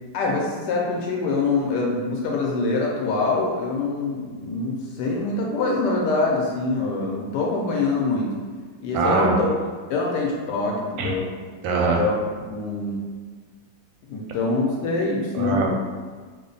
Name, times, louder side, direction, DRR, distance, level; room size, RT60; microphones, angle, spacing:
voice 1, 0.1-8.3 8.8-9.5 9.9-11.3 12.0-12.1 12.5-13.0 14.1-15.7, left 3 dB, 75° left, -2 dB, 1.1 m, -24 dB
voice 2, 8.9-9.4 11.0-11.1 11.6-12.0 15.3-15.8, right 4 dB, 90° right, 0 dB, 1.4 m, -22 dB
3.3 x 2.1 x 3.8 m, 1.5 s
omnidirectional pair, 2.1 m